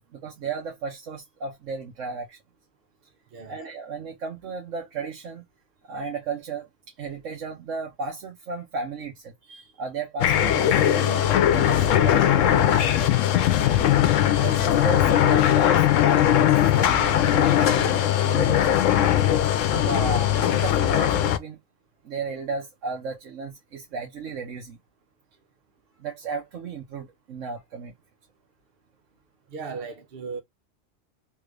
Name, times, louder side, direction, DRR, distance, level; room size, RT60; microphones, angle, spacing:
voice 1, 0.0-2.4 3.5-5.4 5.8-13.3 14.2-18.7 19.7-21.6 22.0-24.8 26.0-27.9, right 4 dB, 75° right, 1.3 m, -35 dB
sound 1, 10.2-21.4, left 11 dB, 85° left, 1.0 m, -20 dB
voice 2, 29.5-30.4, right 5 dB, 55° right, 0.8 m, -36 dB
3.6 x 2.4 x 3.2 m
omnidirectional pair, 1.3 m